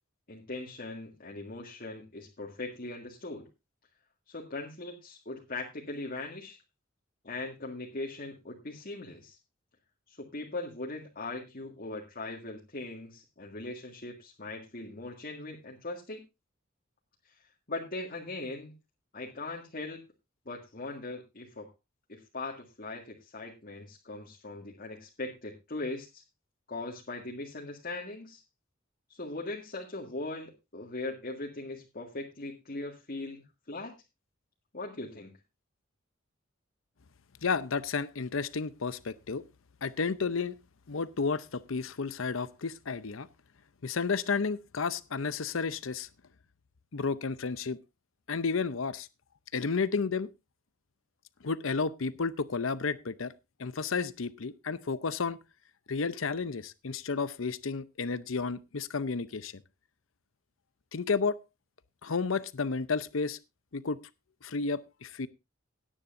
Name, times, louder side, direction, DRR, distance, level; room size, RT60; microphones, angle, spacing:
voice 1, 0.3-3.5 4.3-6.6 7.2-9.4 10.1-16.2 17.3-17.4 17.7-18.7 19.1-20.0 20.5-21.7 22.1-26.2 26.7-28.4 29.1-33.9 34.7-35.4, left 2 dB, 45° left, -1 dB, 1.9 m, -40 dB
voice 2, 37.4-39.4 39.8-40.5 40.9-43.3 43.8-46.1 46.9-47.8 48.3-49.1 49.5-50.3 51.4-53.3 53.6-55.4 55.9-59.5 60.9-61.4 62.0-63.4 63.7-64.0 64.4-65.3, left 4 dB, 80° left, 15 dB, 0.7 m, -32 dB
17.5 x 9.9 x 2.6 m, 0.24 s
head